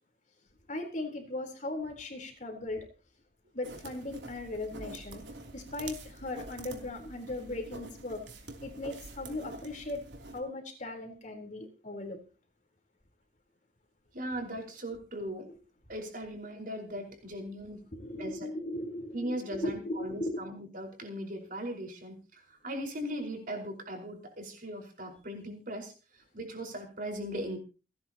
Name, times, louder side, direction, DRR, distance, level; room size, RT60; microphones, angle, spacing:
voice 1, 0.7-2.9 3.5-5.2 5.5-8.2 8.6-10.0 10.3-12.2 17.9-20.5, left 2 dB, 45° left, 3 dB, 4.0 m, -38 dB
sound 1, 3.6-10.4, right 2 dB, 85° right, 3.2 m, -46 dB
voice 2, 14.1-15.5 15.9-17.8 18.2-18.5 19.1-27.6, equal, 50° right, 3 dB, 5.0 m, -39 dB
30.0 x 10.0 x 3.0 m, 0.35 s
head